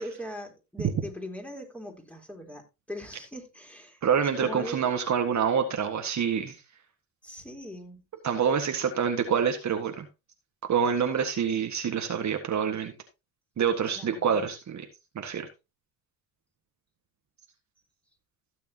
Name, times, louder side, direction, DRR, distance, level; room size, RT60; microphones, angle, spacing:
voice 1, 0.0-2.6 2.9-4.9 7.2-8.0 13.9-14.4, equal, 5° left, 3.8 m, -40 dB
voice 2, 4.0-6.6 8.2-10.1 10.6-12.9 13.6-14.9 15.2-15.5, right 7 dB, 45° right, 1.7 m, -26 dB
16.0 x 6.9 x 2.9 m
supercardioid pair, 80°, 40 cm